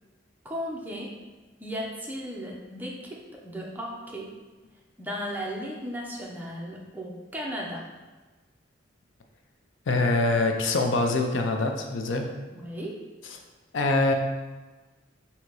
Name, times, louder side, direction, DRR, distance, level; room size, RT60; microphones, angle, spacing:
voice 1, 0.4-1.1 1.6-2.9 3.4-4.3 5.0-7.8 12.5-12.9, equal, 10° right, -3 dB, 0.6 m, -35 dB
voice 2, 9.9-12.4 13.7-14.1, left 2 dB, 70° left, 4 dB, 0.5 m, -24 dB
3.9 x 2.8 x 4.6 m, 1.2 s
head